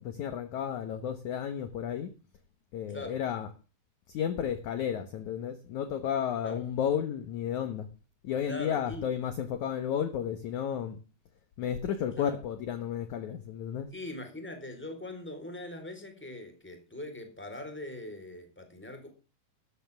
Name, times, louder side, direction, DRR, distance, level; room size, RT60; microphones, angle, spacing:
voice 1, 0.0-2.1 2.7-3.5 4.1-7.9 8.2-11.0 11.6-13.9, left 9 dB, 65° left, 2.2 m, -32 dB
voice 2, 8.5-9.0 12.2-12.4 13.9-19.1, left 2 dB, 5° left, 3.6 m, -41 dB
15.0 x 13.0 x 3.5 m
omnidirectional pair, 4.5 m